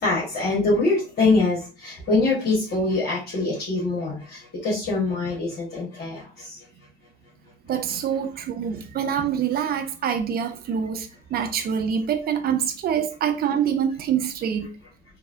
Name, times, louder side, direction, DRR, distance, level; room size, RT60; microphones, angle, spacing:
voice 1, 0.0-6.6, left 3 dB, 35° left, 1.4 m, -24 dB
voice 2, 7.7-14.8, right 8 dB, 30° right, 0.5 m, -25 dB
3.8 x 2.7 x 2.5 m
figure-of-eight pair, 65°, 31 cm